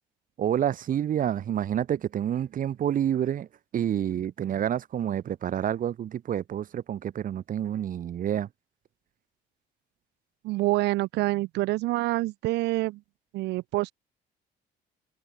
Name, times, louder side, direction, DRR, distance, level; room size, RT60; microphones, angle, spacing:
voice 1, 0.4-3.5 3.7-8.5, right 10 dB, 55° right, 3.3 m, -28 dB
voice 2, 10.4-13.0 13.3-13.9, right 20 dB, 90° right, 3.1 m, -26 dB
cardioid pair, 110°, 17 cm